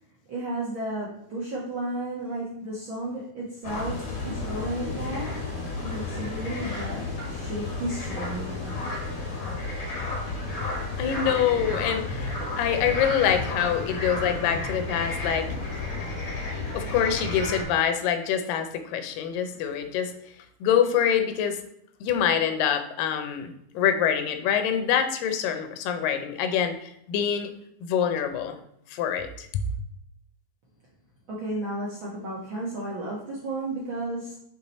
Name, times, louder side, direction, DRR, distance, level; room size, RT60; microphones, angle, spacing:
voice 1, 0.3-5.4 5.8-8.7 31.3-34.4, right 1 dB, 60° right, -5 dB, 1.3 m, -33 dB
sound 1, 3.6-17.6, left 2 dB, 35° left, 1.5 m, -32 dB
voice 2, 10.6-15.5 16.7-20.1 20.6-21.6 22.0-27.5 27.8-28.6 28.9-29.6, left 8 dB, 85° left, 8 dB, 2.4 m, -25 dB
5.6 x 5.0 x 4.1 m, 0.73 s
omnidirectional pair, 3.8 m